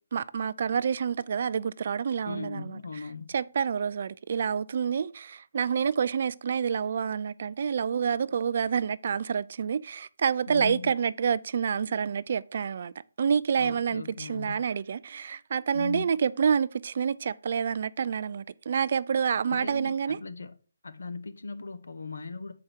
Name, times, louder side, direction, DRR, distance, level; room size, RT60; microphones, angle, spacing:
voice 1, 0.0-2.8 3.3-12.9 13.2-20.2, right 7 dB, 50° right, 0.4 m, -28 dB
voice 2, 2.2-3.3 10.5-10.9 13.5-14.7 15.7-16.1 19.5-20.5 20.8-22.5, left 4 dB, 75° left, 0.9 m, -38 dB
7.1 x 4.9 x 4.4 m
figure-of-eight pair, 155°, 0 cm